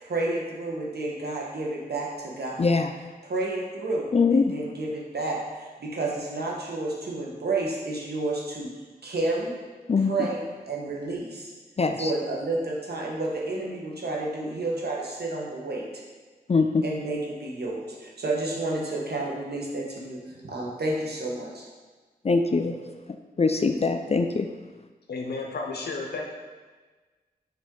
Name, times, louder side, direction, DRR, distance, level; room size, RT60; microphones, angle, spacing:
voice 1, 0.0-2.6 3.2-4.1 4.3-8.7 9.0-9.5 10.1-11.5 12.0-16.0 16.8-21.6, right 2 dB, 85° right, -3 dB, 1.2 m, -30 dB
voice 2, 2.6-2.9 4.1-4.5 9.9-10.3 11.8-12.1 16.5-16.8 22.2-22.7 23.4-24.5, left 4 dB, 40° left, 6 dB, 0.4 m, -22 dB
voice 3, 25.1-26.3, left 3 dB, 90° left, 1 dB, 0.6 m, -32 dB
5.8 x 5.2 x 3.8 m, 1.3 s
cardioid pair, 45°, 16 cm